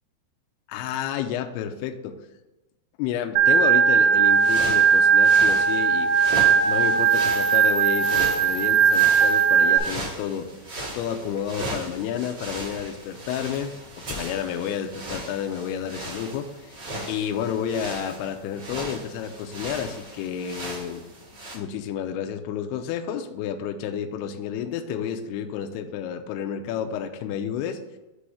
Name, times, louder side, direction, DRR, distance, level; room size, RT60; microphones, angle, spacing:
voice 1, 0.7-2.2 3.0-6.1 6.7-10.5 10.9-16.8 17.1-21.0 21.5-27.8, left 8 dB, 90° left, 6 dB, 2.3 m, -30 dB
Organ, 3.4-9.8, right 7 dB, 85° right, 2.1 m, -18 dB
sound 1, 4.2-21.5, right 1 dB, 50° right, 1.2 m, -37 dB
8.2 x 3.1 x 6.3 m, 1.0 s
omnidirectional pair, 5.2 m